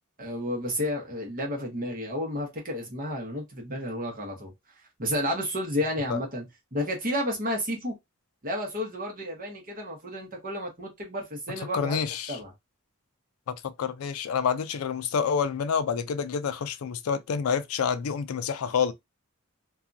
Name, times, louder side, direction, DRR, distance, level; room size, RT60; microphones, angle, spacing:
voice 1, 0.2-4.5 5.0-6.4 6.7-7.9 8.4-12.0 12.3-12.5, left 1 dB, 40° right, 1.1 m, -31 dB
voice 2, 11.7-12.4 13.5-18.9, left 6 dB, 85° left, 0.4 m, -28 dB
2.7 x 2.3 x 2.5 m
head